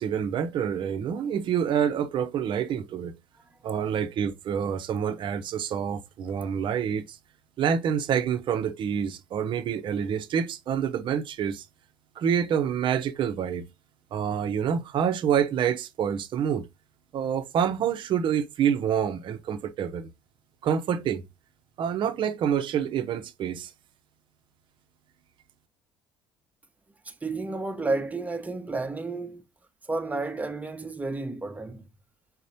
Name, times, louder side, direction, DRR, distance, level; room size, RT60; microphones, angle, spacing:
voice 1, 0.0-3.1 3.6-7.2 7.6-11.7 12.2-13.7 14.1-16.7 17.1-20.1 20.6-21.2 21.8-23.7, right 8 dB, 55° right, 0.7 m, -27 dB
voice 2, 27.0-29.4 29.8-31.8, right 3 dB, 15° right, 0.9 m, -31 dB
4.2 x 4.1 x 2.7 m
hypercardioid pair, 60°, 10 cm